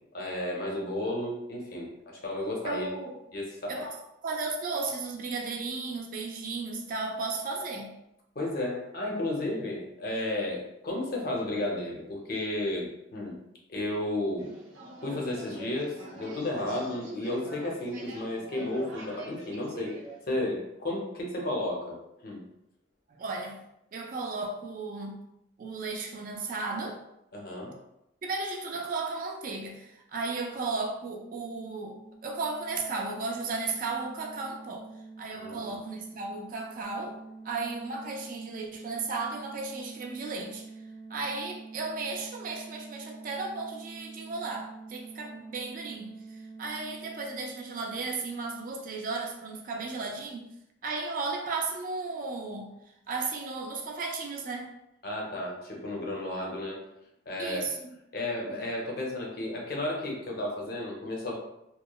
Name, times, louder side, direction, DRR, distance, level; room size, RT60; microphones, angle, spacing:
voice 1, 0.1-2.9 3.3-3.9 8.4-13.4 13.7-14.5 15.0-20.0 20.3-22.0 22.2-22.4 27.3-27.8 35.3-35.8 55.0-56.8 57.3-57.7 58.1-61.3, left 1 dB, 50° left, -1 dB, 0.5 m, -33 dB
voice 2, 2.6-3.2 3.7-7.9 23.1-23.6 23.9-25.2 25.6-27.0 28.2-32.0 32.2-34.9 35.2-37.2 37.4-40.7 41.1-50.5 50.8-52.7 53.1-54.7 57.4-57.8, right 3 dB, 45° right, 1 dB, 0.3 m, -35 dB
sound 1, 14.4-20.3, right 1 dB, 85° right, 0.7 m, -45 dB
sound 2, 30.8-48.3, right 3 dB, 25° right, 0.7 m, -47 dB
2.9 x 2.0 x 2.2 m, 0.84 s
head